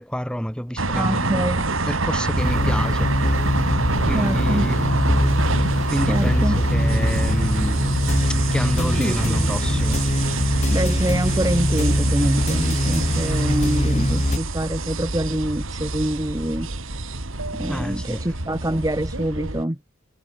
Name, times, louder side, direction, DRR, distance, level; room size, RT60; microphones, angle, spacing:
voice 1, 0.0-3.3 4.1-4.8 5.9-7.8 8.5-10.0 17.7-18.2, equal, 5° left, 5.4 m, -29 dB
sound 1, 0.8-19.6, right 2 dB, 65° right, 3.0 m, -26 dB
voice 2, 0.9-1.7 4.1-4.7 6.1-6.6 9.0-9.8 10.7-16.7 17.6-19.8, right 1 dB, 15° right, 1.2 m, -26 dB
sound 2, 2.4-14.4, left 1 dB, 30° left, 2.2 m, -22 dB
head